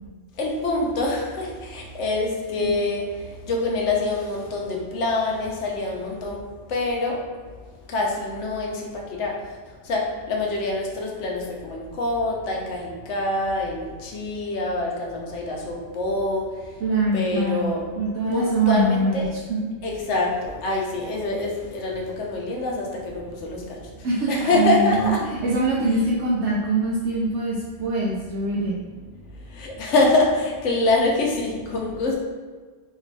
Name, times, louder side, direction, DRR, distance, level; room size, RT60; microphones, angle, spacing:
voice 1, 0.4-7.4 7.9-9.6 9.8-16.8 17.1-17.9 18.3-19.2 19.8-25.3 29.5-32.2, left 2 dB, 80° left, -1 dB, 1.0 m, -25 dB
voice 2, 16.8-19.7 24.0-28.8, right 2 dB, 75° right, -6 dB, 0.9 m, -23 dB
3.3 x 2.4 x 3.2 m, 1.5 s
omnidirectional pair, 1.2 m